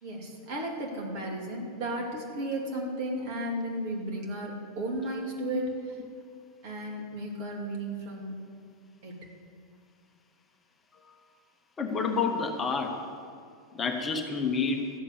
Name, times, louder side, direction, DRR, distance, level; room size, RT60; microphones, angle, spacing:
voice 1, 0.0-5.7 6.6-8.4 9.0-9.2, right 1 dB, 45° right, -1 dB, 2.8 m, -34 dB
voice 2, 11.8-13.1 13.7-14.9, left 5 dB, 20° left, 3 dB, 1.2 m, -29 dB
14.0 x 7.4 x 8.3 m, 2.2 s
figure-of-eight pair, 90°, 0 cm